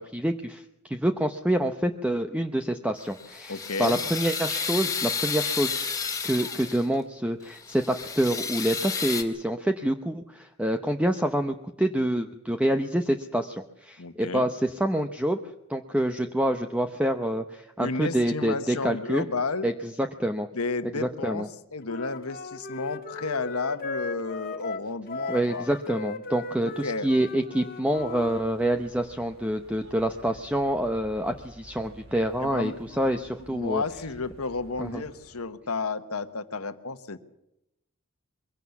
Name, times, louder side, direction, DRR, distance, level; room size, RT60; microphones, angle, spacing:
voice 1, 0.0-5.9 6.2-15.4 15.7-19.2 19.6-20.5 20.9-21.5 25.3-33.8 34.8-35.0, right 1 dB, 5° right, 6 dB, 0.8 m, -27 dB
sound 1, 3.0-7.0 7.5-9.2, left 5 dB, 15° left, 2.0 m, -31 dB
voice 2, 3.5-4.0 14.0-14.5 17.8-19.7 20.5-21.4 21.7-25.7 26.6-27.1 32.4-33.0 33.5-37.2, left 3 dB, 85° left, 10 dB, 1.3 m, -32 dB
Wind instrument woodwind instrument, 21.8-28.4, left 3 dB, 45° left, 1.6 m, -37 dB
sound 2, 27.9-35.5, right 1 dB, 70° right, 4.9 m, -52 dB
23.0 x 17.0 x 7.1 m, 0.85 s
head